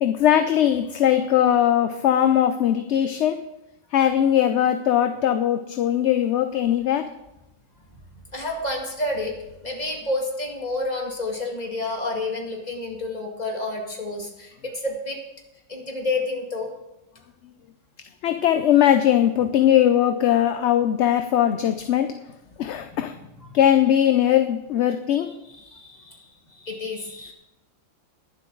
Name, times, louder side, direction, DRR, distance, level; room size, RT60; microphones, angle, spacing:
voice 1, 0.0-3.4 3.9-7.1 18.2-22.1 22.6-23.1 23.5-25.3, left 10 dB, 65° left, 8 dB, 0.9 m, -20 dB
voice 2, 8.3-9.4 9.6-15.2 15.7-16.7 22.9-23.6 25.4-27.3, left 2 dB, 30° left, 1 dB, 2.2 m, -30 dB
21.0 x 7.6 x 3.9 m, 0.91 s
omnidirectional pair, 1.4 m